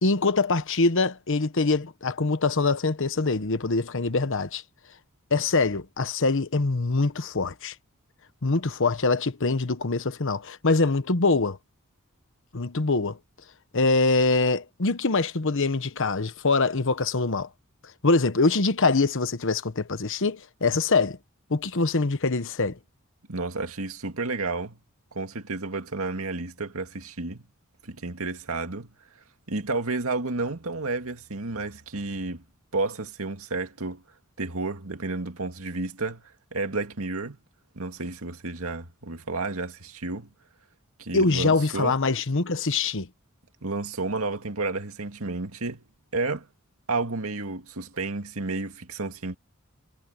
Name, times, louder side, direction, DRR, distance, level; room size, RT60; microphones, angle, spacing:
voice 1, 0.0-4.6 5.3-7.7 8.4-11.6 12.5-13.2 13.7-17.5 18.0-21.2 21.5-22.8 41.1-43.1, left 3 dB, 60° left, 1.1 m, -24 dB
voice 2, 23.3-24.8 25.1-27.4 27.8-28.9 29.5-32.4 32.7-34.0 34.4-37.4 37.7-40.3 41.0-42.0 43.6-45.8 46.1-46.5 46.9-49.4, right 3 dB, 75° right, 2.3 m, -31 dB
head